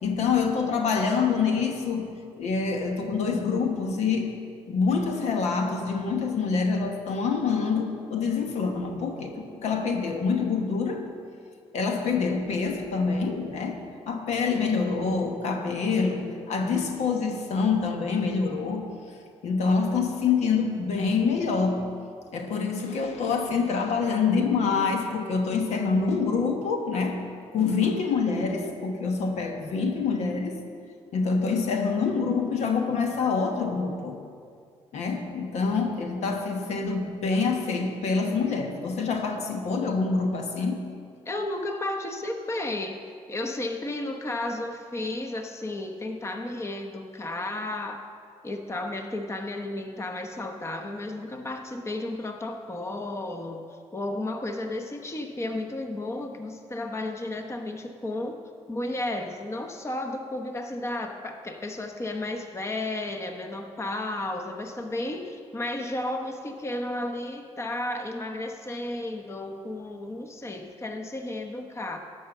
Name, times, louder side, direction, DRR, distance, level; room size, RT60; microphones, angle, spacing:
voice 1, 0.0-4.4 4.7-11.1 11.7-18.9 19.4-21.9 22.3-27.2 27.5-30.6 31.1-34.2 34.9-40.8, left 5 dB, 75° left, 4 dB, 1.2 m, -26 dB
voice 2, 41.3-43.0 43.3-48.0 48.4-53.7 53.9-58.4 58.7-72.0, left 1 dB, 25° left, 5 dB, 0.9 m, -33 dB
12.0 x 5.5 x 7.2 m, 2.3 s
cardioid pair, 85°, 11 cm